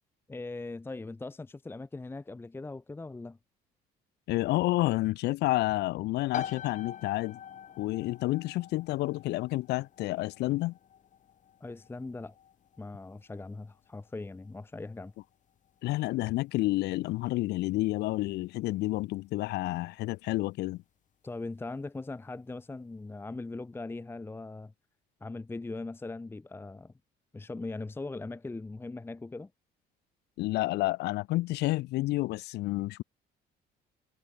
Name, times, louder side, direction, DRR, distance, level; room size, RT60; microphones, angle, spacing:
voice 1, 0.3-3.4 11.6-12.4 12.8-15.1 21.2-24.7 25.2-26.9 27.3-29.5, left 3 dB, 15° left, 0.9 m, -40 dB
voice 2, 4.3-7.4 7.8-10.7 15.8-20.8 30.4-33.0, left 18 dB, 80° left, 1.3 m, -30 dB
sound 1, 6.3-20.8, left 9 dB, 50° left, 1.8 m, -46 dB
cardioid pair, 110°, 17 cm